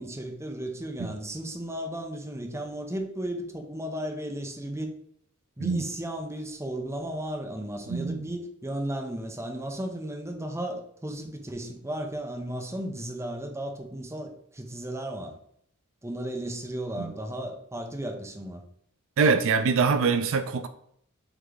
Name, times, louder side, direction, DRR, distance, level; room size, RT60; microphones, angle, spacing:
voice 1, 0.0-4.9 5.6-15.4 16.0-18.6, right 1 dB, 15° right, 3 dB, 0.8 m, -34 dB
voice 2, 7.9-8.3 17.0-17.1 19.2-20.7, right 5 dB, 65° right, 10 dB, 0.4 m, -24 dB
8.0 x 3.1 x 3.9 m, 0.69 s
head